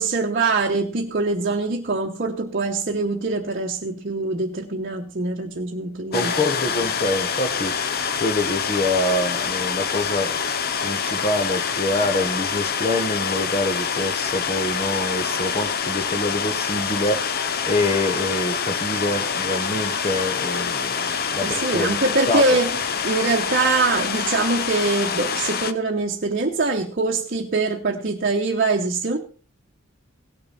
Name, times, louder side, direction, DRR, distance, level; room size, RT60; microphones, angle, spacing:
voice 1, 0.0-6.4 21.4-29.2, right 3 dB, 45° right, 0 dB, 0.9 m, -23 dB
sound 1, 6.1-25.7, left 6 dB, 50° left, 0.7 m, -26 dB
voice 2, 6.1-7.9 8.2-10.4 10.8-22.0 22.3-22.6, left 1 dB, 30° left, 7 dB, 1.1 m, -26 dB
17.5 x 6.6 x 4.1 m, 0.39 s
head